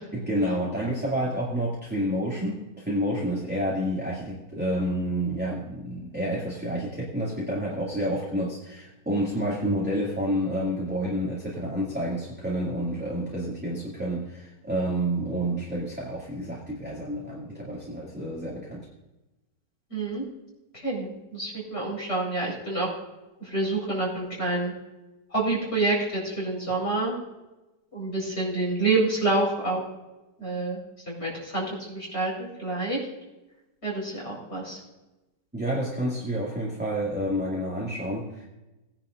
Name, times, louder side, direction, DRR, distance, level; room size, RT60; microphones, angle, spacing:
voice 1, 0.1-18.9 35.5-38.5, equal, 5° right, -6 dB, 2.2 m, -29 dB
voice 2, 19.9-20.2 20.7-22.9 23.4-24.7 25.3-27.1 27.9-29.8 30.4-30.8 31.1-33.0 33.8-34.8, right 2 dB, 35° left, -5 dB, 4.9 m, -28 dB
19.5 x 10.5 x 2.6 m, 1.0 s
omnidirectional pair, 1.8 m